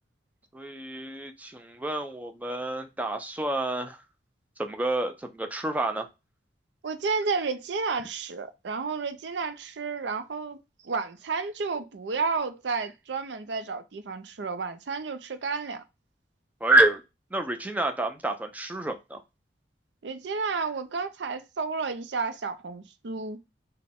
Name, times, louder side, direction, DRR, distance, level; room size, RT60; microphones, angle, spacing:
voice 1, 0.5-4.0 4.6-6.1 16.6-17.0 17.3-19.2, right 2 dB, 10° right, 0.5 m, -27 dB
voice 2, 6.8-10.6 10.8-15.8 20.0-23.4, right 4 dB, 65° right, 0.5 m, -31 dB
4.0 x 2.2 x 3.5 m
head